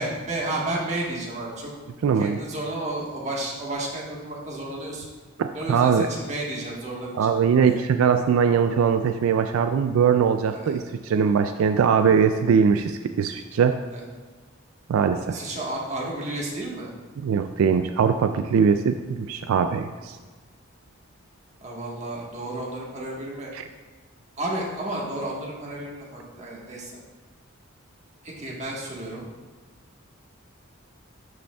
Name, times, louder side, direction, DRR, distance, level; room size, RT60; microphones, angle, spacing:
voice 1, 0.0-1.7 2.2-5.1 5.5-7.8 10.4-10.8 13.9-14.0 15.3-16.9 21.6-23.5 24.4-26.9 28.2-29.3, right 1 dB, 35° right, -3 dB, 1.4 m, -32 dB
voice 2, 2.0-2.4 5.4-6.1 7.2-13.8 14.9-15.4 17.2-20.2 23.5-23.6, right 6 dB, 80° right, 8 dB, 0.3 m, -21 dB
12.0 x 5.2 x 2.3 m, 1.3 s
head